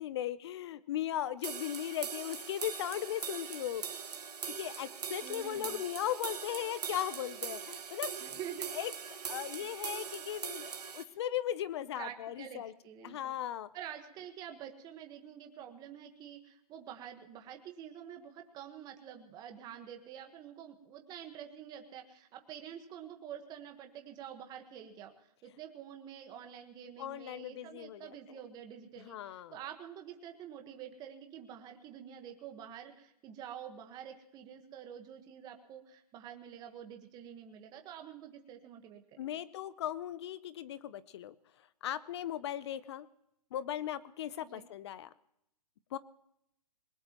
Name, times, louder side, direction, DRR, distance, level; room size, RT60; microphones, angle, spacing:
voice 1, 0.0-3.8 4.5-8.1 8.8-8.9 9.3-12.7 13.0-13.7 27.0-28.2 29.0-29.5 39.2-41.3 41.8-43.1 43.5-45.1 45.9-46.0, left 11 dB, 45° left, 17 dB, 0.6 m, -37 dB
sound 1, 1.4-11.0, right 6 dB, 90° right, 1.9 m, -41 dB
voice 2, 5.2-5.8 8.2-8.8 9.6-9.7 12.0-13.4 13.7-39.4 44.4-44.7, right 9 dB, 20° right, 5 dB, 1.4 m, -48 dB
21.0 x 19.0 x 3.0 m, 0.78 s
hypercardioid pair, 145°, 20 cm